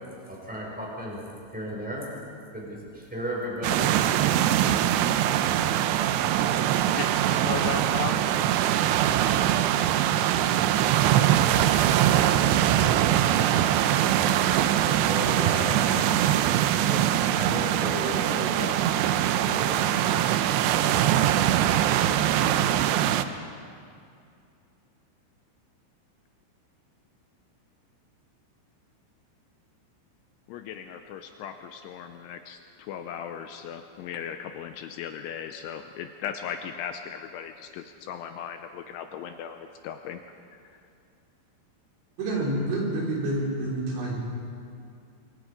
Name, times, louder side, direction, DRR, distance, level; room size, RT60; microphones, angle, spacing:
voice 1, 0.3-1.2 1.5-2.1 2.5-2.8 3.1-3.9 14.8-16.1 16.7-17.0 17.3-18.5 19.4-19.9 20.3-20.4, equal, ahead, -3 dB, 4.6 m, -34 dB
sound 1, 3.6-23.2, right 11 dB, 85° right, 2.4 m, -22 dB
voice 2, 6.8-8.2 18.6-18.8 22.1-22.4 30.5-40.2 40.5-40.6, left 8 dB, 80° left, 6 dB, 2.9 m, -37 dB
voice 3, 42.2-44.2, right 1 dB, 65° right, -3 dB, 6.1 m, -28 dB
26.0 x 23.5 x 5.0 m, 2.4 s
omnidirectional pair, 5.9 m